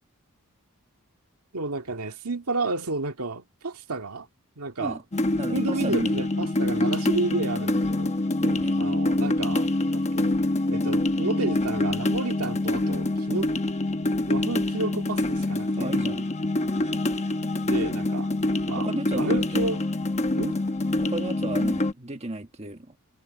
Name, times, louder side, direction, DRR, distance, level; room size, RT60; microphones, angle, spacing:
voice 1, 1.5-4.3 4.6-5.0 5.5-8.1 8.8-10.4 10.7-13.5 14.3-15.9 17.6-18.3 18.7-18.9 19.1-19.8 20.3-20.6, right 3 dB, 80° right, 2.0 m, -31 dB
sound 1, 5.1-21.9, left 2 dB, 30° left, 1.0 m, -25 dB
voice 2, 5.3-6.1 8.4-8.8 15.8-16.3 18.8-19.8 21.0-23.0, right 2 dB, 30° right, 1.6 m, -34 dB
head